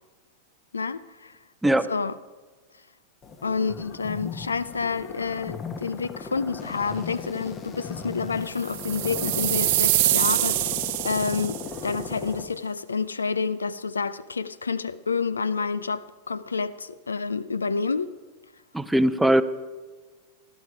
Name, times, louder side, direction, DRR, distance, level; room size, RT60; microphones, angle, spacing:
voice 1, 0.7-1.4 1.9-2.2 3.4-10.8 11.0-18.2, left 5 dB, 90° left, 0.4 m, -29 dB
sound 1, 3.2-12.4, left 5 dB, 30° left, 1.3 m, -37 dB
sound 2, 8.6-11.8, right 17 dB, 60° right, 0.6 m, -25 dB
voice 2, 18.7-19.4, right 1 dB, 5° right, 0.6 m, -20 dB
15.5 x 11.5 x 4.9 m
hypercardioid pair, 95°, 0 cm